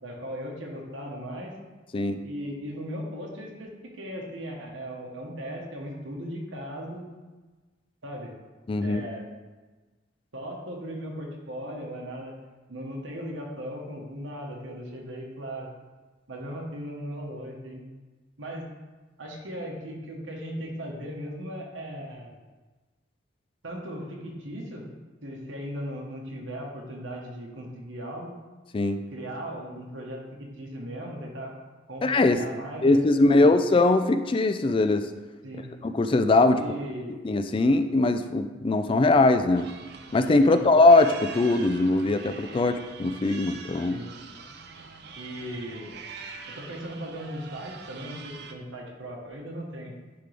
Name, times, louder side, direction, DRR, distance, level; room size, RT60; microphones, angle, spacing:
voice 1, 0.0-1.5 2.2-7.1 8.0-8.3 8.8-9.3 10.3-12.3 12.7-15.7 16.3-17.8 18.4-18.7 19.2-22.4 23.6-24.9 25.2-28.4 29.1-31.5 31.9-33.0 33.3-33.5 35.4-35.7 36.5-37.2 40.4-40.6 43.9-44.1 45.1-45.9 46.5-49.9, equal, 85° right, -1 dB, 1.2 m, -37 dB
voice 2, 8.7-9.0 28.7-29.0 32.0-32.4 32.8-35.1 35.8-36.6 37.2-39.7 40.1-44.0, left 2 dB, 25° left, 9 dB, 0.3 m, -21 dB
sound 1, 39.5-48.5, right 5 dB, 55° right, 0.6 m, -44 dB
10.0 x 3.7 x 3.4 m, 1.2 s
head